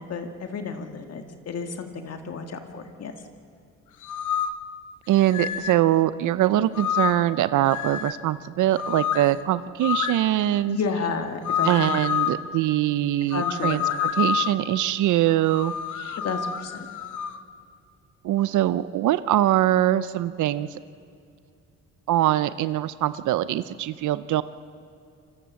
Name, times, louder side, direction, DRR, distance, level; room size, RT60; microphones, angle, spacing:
voice 1, 0.0-3.1 10.7-12.0 13.3-14.0 16.2-16.9, left 5 dB, 55° left, 5 dB, 2.0 m, -31 dB
sound 1, 4.0-4.6 5.3-5.8 6.7-7.3 7.7-8.2 8.7-9.3 9.8-10.2 11.4-12.4 13.3-14.6 15.5-17.4, left 8 dB, 80° left, 1.1 m, -28 dB
voice 2, 5.1-10.8 11.6-16.2 18.2-20.8 22.1-24.4, right 13 dB, 75° right, 15 dB, 0.7 m, -23 dB
26.5 x 21.0 x 7.6 m, 2.4 s
cardioid pair, 90°, 30 cm